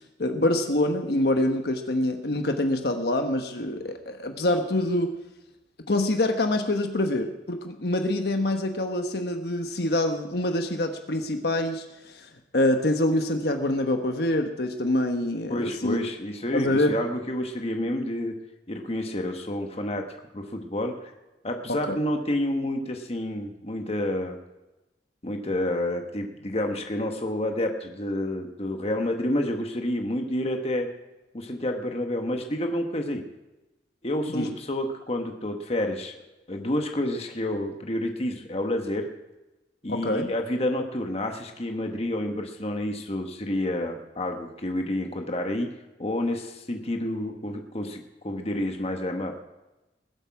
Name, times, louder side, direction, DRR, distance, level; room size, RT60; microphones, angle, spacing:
voice 1, 0.2-5.1 5.9-16.0 16.5-16.9 21.7-22.0 34.3-34.5 39.9-40.3, left 1 dB, 65° left, 5 dB, 1.3 m, -25 dB
voice 2, 15.5-18.3 18.7-20.1 20.3-21.1 21.4-24.4 25.2-30.9 31.3-33.2 34.0-36.1 36.5-39.1 39.8-45.7 46.0-49.4, left 1 dB, 35° left, 4 dB, 1.3 m, -29 dB
20.5 x 8.2 x 4.7 m, 1.0 s
head